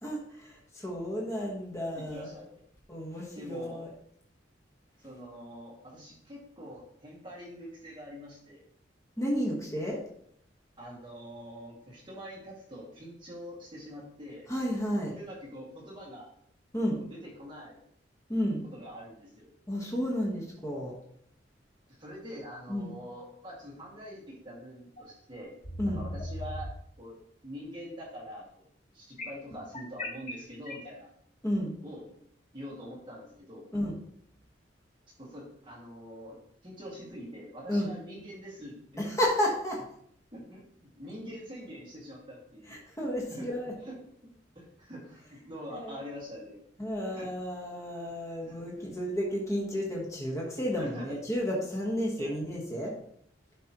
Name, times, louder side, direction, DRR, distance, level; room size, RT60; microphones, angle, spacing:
voice 1, 0.0-2.3 2.9-3.9 9.2-10.0 14.5-15.1 16.7-17.0 18.3-18.6 19.7-21.0 22.7-22.9 25.8-26.0 31.4-31.7 33.7-33.9 37.7-37.9 39.0-39.8 42.7-43.7 45.8-46.0 46.8-53.0, equal, 15° left, -3 dB, 1.3 m, -32 dB
voice 2, 1.9-2.6 3.3-3.9 5.0-8.6 10.8-14.5 15.2-16.3 17.0-17.8 18.7-19.5 21.9-25.5 25.9-26.7 27.0-27.2 27.4-28.7 28.9-31.1 31.8-32.1 32.5-33.7 35.2-36.4 36.6-39.1 40.3-43.0 43.3-43.5 43.8-44.0 44.6-46.6 47.2-47.3 48.5-48.9 50.7-51.2 52.2-52.3, equal, 25° right, -5 dB, 2.1 m, -44 dB
sound 1, 25.0-25.1 25.6-26.7 29.2-30.9, left 1 dB, 40° left, 1.8 m, -37 dB
11.5 x 5.2 x 3.0 m, 0.68 s
head